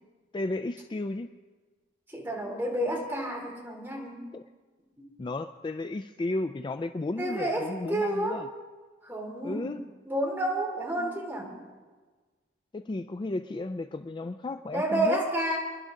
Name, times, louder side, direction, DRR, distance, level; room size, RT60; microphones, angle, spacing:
voice 1, 0.3-1.3 4.3-4.4 5.2-8.5 9.4-9.8 12.7-15.2, left 2 dB, 25° left, 9 dB, 0.3 m, -33 dB
voice 2, 2.1-4.2 5.0-5.1 7.2-8.4 9.0-9.7 10.0-11.5 14.7-15.6, right 1 dB, 10° right, -2 dB, 3.1 m, -30 dB
25.5 x 11.0 x 3.7 m, 1.4 s
head